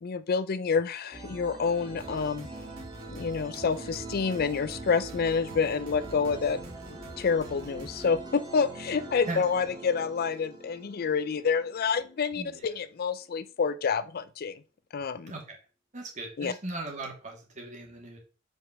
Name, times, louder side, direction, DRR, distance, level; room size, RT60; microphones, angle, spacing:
voice 1, 0.0-2.5 3.1-6.6 7.2-14.6 14.9-15.3 16.4-16.5, left 5 dB, 45° left, 0.4 m, -28 dB
sound 1, 1.1-12.5, right 2 dB, 20° right, 1.7 m, -43 dB
sound 2, 2.0-8.2, right 1 dB, 90° right, 2.1 m, -49 dB
voice 2, 9.3-9.7 12.3-12.7 15.3-15.6 15.9-18.2, right 2 dB, 35° right, 2.4 m, -39 dB
5.4 x 5.0 x 5.9 m
head